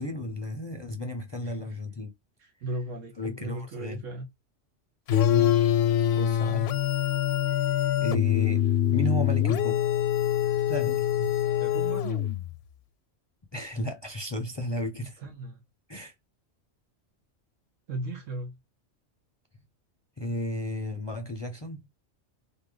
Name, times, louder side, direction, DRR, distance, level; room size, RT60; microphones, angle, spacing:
voice 1, 0.0-2.1 3.2-4.0 5.3-5.6 6.2-6.7 8.0-9.8 10.7-11.3 13.5-15.2 15.9-16.1 20.2-21.9, left 1 dB, 25° left, 0.6 m, -34 dB
voice 2, 1.4-1.8 2.4-4.3 6.0-6.1 6.5-6.7 11.6-12.2 15.0-15.6 17.9-18.6, right 2 dB, 85° right, 1.6 m, -37 dB
sound 1, 5.1-12.6, left 10 dB, 65° left, 0.7 m, -24 dB
3.9 x 3.3 x 3.8 m
omnidirectional pair, 1.3 m